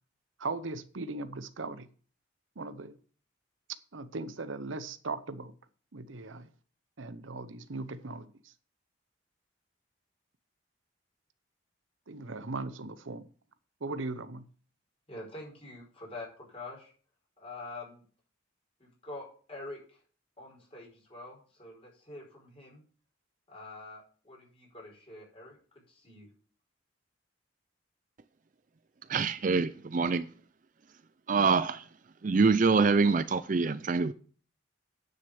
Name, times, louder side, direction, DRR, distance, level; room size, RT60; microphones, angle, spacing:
voice 1, 0.4-1.9 2.6-3.0 3.9-5.5 5.9-6.5 7.0-8.3 12.1-13.3 13.8-14.4, right 3 dB, 75° right, 0.8 m, -38 dB
voice 2, 15.1-16.9 17.4-18.0 18.8-20.0 20.4-22.8 23.5-25.6 25.9-26.3, left 2 dB, 30° left, 5.2 m, -46 dB
voice 3, 29.1-30.3 31.3-31.8 32.2-34.1, right 4 dB, 40° right, 0.4 m, -25 dB
10.0 x 6.6 x 7.0 m
head